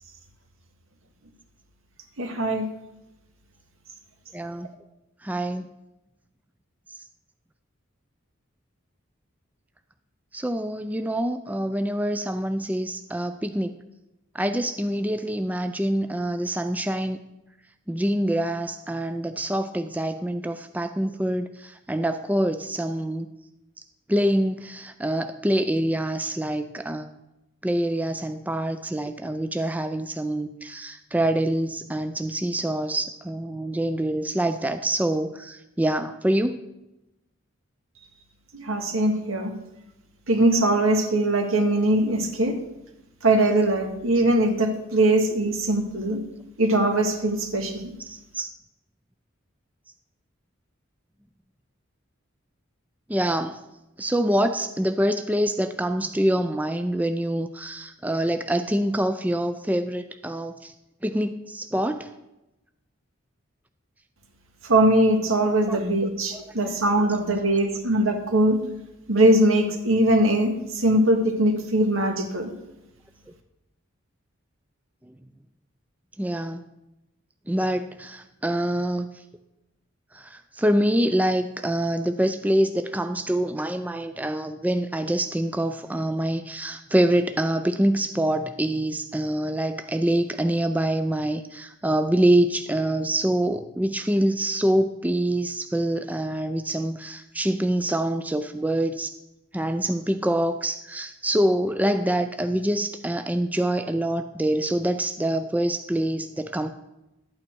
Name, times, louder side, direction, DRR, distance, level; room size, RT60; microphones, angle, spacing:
voice 1, 2.2-2.7 38.5-39.5 40.3-42.5 43.2-46.2 46.6-47.9 64.7-68.6 69.1-72.5, right 1 dB, 85° right, 3 dB, 1.8 m, -21 dB
voice 2, 4.3-4.7 5.2-5.6 10.3-13.7 14.3-17.2 17.9-23.3 24.1-27.2 27.6-36.6 48.0-48.5 53.1-53.6 54.0-60.7 61.0-62.1 65.7-65.8 66.3-66.7 76.2-76.6 77.5-79.1 80.1-99.1 99.5-106.7, right 1 dB, 10° right, 9 dB, 0.4 m, -25 dB
12.0 x 8.8 x 4.5 m, 0.94 s
head